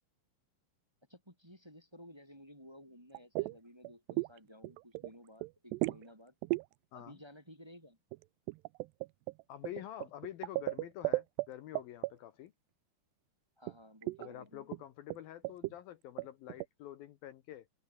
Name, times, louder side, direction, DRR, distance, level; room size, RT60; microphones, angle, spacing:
voice 1, 1.1-6.3 6.9-8.0 13.6-14.7, equal, 5° right, 3.7 m, -55 dB
sound 1, 3.1-3.5 3.8-4.4 4.6-5.1 5.4-6.0 6.4-6.6 8.1-11.5 11.8-12.1 13.7-13.8 14.0-14.3 14.7-14.8 15.1-15.2 15.4-15.7 16.2-16.7, right 23 dB, 90° right, 2.7 m, -35 dB
voice 2, 9.5-12.5 14.2-17.7, left 12 dB, 70° left, 2.7 m, -47 dB
omnidirectional pair, 4.7 m